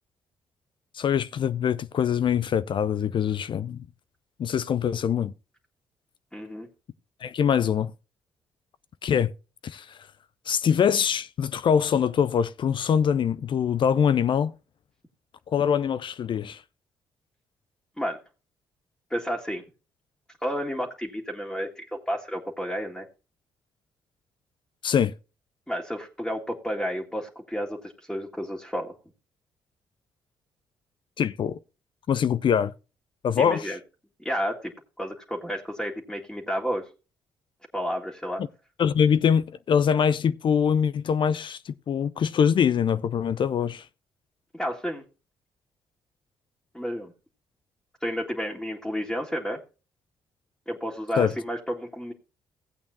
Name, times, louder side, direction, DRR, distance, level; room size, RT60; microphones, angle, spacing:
voice 1, 0.9-3.8 4.4-5.3 7.2-7.9 9.0-9.3 9.6-10.0 10.5-14.5 15.5-16.6 24.8-25.1 31.2-31.6 32.1-32.7 33.2-33.7 38.8-43.8 51.2-51.3, left 7 dB, 45° left, 0.5 m, -23 dB
voice 2, 6.3-6.7 18.0-18.2 19.1-19.6 20.4-23.1 25.7-28.9 33.4-33.8 34.2-34.7 35.0-36.9 37.7-38.4 44.5-45.0 46.7-47.1 48.0-49.6 50.7-52.1, equal, 5° left, 1.9 m, -31 dB
16.0 x 8.5 x 2.7 m
hypercardioid pair, 45°, 11 cm